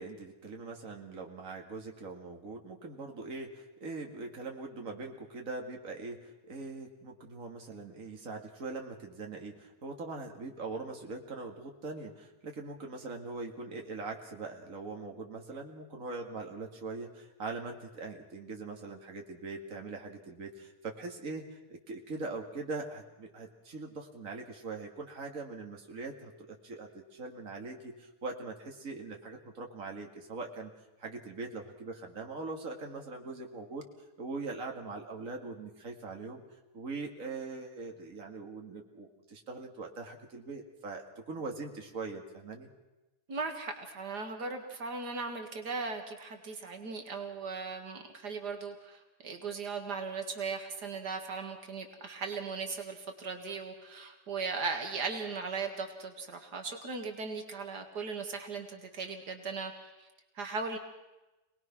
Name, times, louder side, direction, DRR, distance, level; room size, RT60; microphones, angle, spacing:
voice 1, 0.0-30.7 31.0-33.8 34.2-36.4 36.7-42.7, right 3 dB, 55° right, 2 dB, 2.6 m, -42 dB
voice 2, 43.3-60.1 60.4-60.8, right 4 dB, 85° right, 4 dB, 2.5 m, -38 dB
27.0 x 19.5 x 6.0 m, 1.0 s
omnidirectional pair, 1.7 m